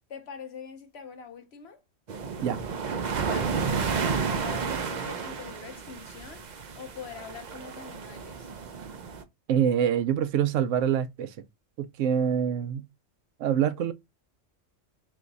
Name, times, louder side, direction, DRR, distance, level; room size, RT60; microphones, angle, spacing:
voice 1, 0.1-1.8 3.2-6.5 6.8-8.5, left 6 dB, 60° left, 1.0 m, -43 dB
sound 1, 2.1-9.2, right 5 dB, 50° right, 0.6 m, -32 dB
voice 2, 9.5-11.3 11.8-12.8 13.4-13.9, right 9 dB, 80° right, 0.9 m, -25 dB
3.5 x 3.1 x 3.9 m
omnidirectional pair, 1.3 m